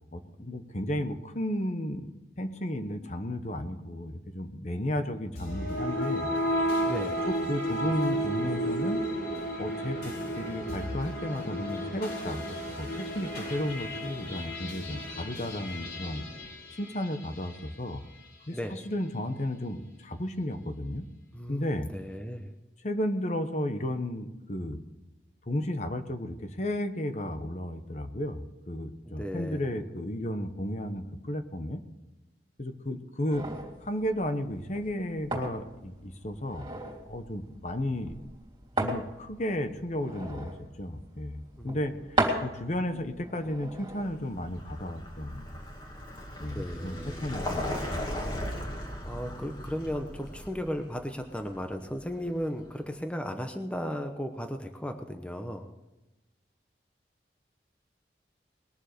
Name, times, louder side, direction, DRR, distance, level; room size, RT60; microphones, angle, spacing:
voice 1, 0.1-2.1 2.4-6.3 7.2-9.0 9.6-16.2 16.7-18.0 18.5-21.1 21.5-21.9 22.8-24.8 25.4-31.8 32.6-33.5 33.8-36.7 37.1-38.2 38.8-45.5 46.4-48.0 48.3-48.4, left 1 dB, 40° left, 8 dB, 1.1 m, -33 dB
sound 1, 5.4-17.7, equal, 70° left, 4.7 m, -33 dB
voice 2, 6.8-7.2 18.5-18.7 21.3-22.5 29.0-29.7 41.6-41.8 46.5-47.4 49.0-55.7, equal, 5° left, 5 dB, 0.9 m, -35 dB
sound 2, 33.3-45.1, right 1 dB, 25° right, 3.2 m, -37 dB
Vehicle, 43.9-52.7, left 1 dB, 25° left, 2.3 m, -38 dB
21.0 x 7.3 x 6.7 m, 1.0 s
head